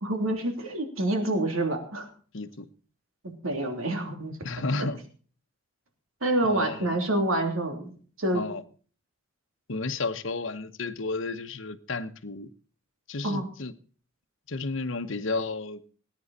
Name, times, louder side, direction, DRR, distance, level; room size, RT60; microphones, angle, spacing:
voice 1, 0.0-2.1 3.2-4.4 4.8-4.9 6.2-7.9 8.2-8.4 13.2-13.5, right 1 dB, 90° right, 3.0 m, -27 dB
voice 2, 2.3-2.7 4.4-5.0 6.4-7.0 8.3-8.6 9.7-12.5 13.1-13.7 14.5-15.8, left 3 dB, 70° left, 1.0 m, -32 dB
19.0 x 9.3 x 4.2 m
head